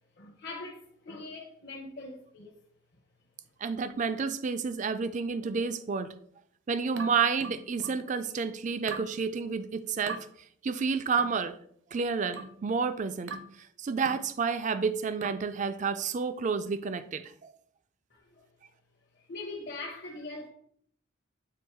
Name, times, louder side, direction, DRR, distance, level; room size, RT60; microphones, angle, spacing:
voice 1, 0.2-2.6 18.1-18.4 19.1-20.5, left 2 dB, 50° left, 0.8 m, -42 dB
voice 2, 3.6-6.1 6.7-10.2 10.6-11.5 11.9-13.3 13.8-17.5, right 5 dB, 35° right, 0.4 m, -30 dB
sound 1, 7.0-8.1 8.9-9.2 10.1-10.3 11.2-11.4 12.3-12.6 13.3-13.6 14.1-14.3 15.2-15.5, right 4 dB, 65° right, 0.7 m, -41 dB
7.8 x 3.0 x 4.6 m
head